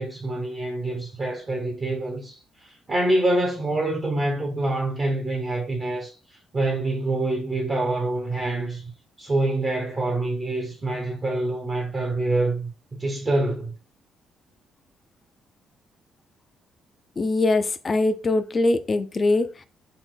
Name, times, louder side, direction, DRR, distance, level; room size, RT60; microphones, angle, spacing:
voice 1, 0.0-6.2 6.5-8.9 9.2-13.7, right 2 dB, 40° right, 1.1 m, -26 dB
voice 2, 17.2-19.5, left 2 dB, 35° left, 0.4 m, -22 dB
3.9 x 2.5 x 3.8 m
cardioid pair, 90°, 0 cm